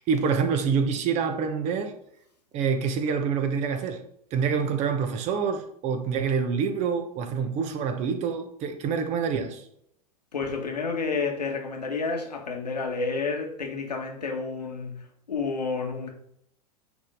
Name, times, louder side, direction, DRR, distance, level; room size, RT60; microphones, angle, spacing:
voice 1, 0.0-1.9 2.5-4.0 4.3-9.6, right 6 dB, 35° right, 1.1 m, -26 dB
voice 2, 10.3-16.1, left 4 dB, 75° left, 1.9 m, -30 dB
10.0 x 4.3 x 3.9 m
figure-of-eight pair, 95°, 21 cm